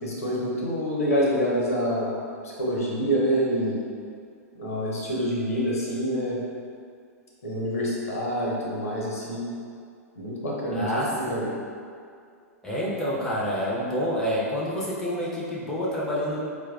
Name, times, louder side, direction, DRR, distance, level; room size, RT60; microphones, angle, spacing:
voice 1, 0.0-3.8 4.5-6.4 7.4-9.4 10.2-10.9 11.2-11.5, equal, 65° left, -5 dB, 0.8 m, -27 dB
voice 2, 10.7-11.4 12.6-16.4, equal, 5° left, -7 dB, 0.6 m, -28 dB
4.4 x 2.3 x 2.3 m, 2.3 s
figure-of-eight pair, 100°, 8 cm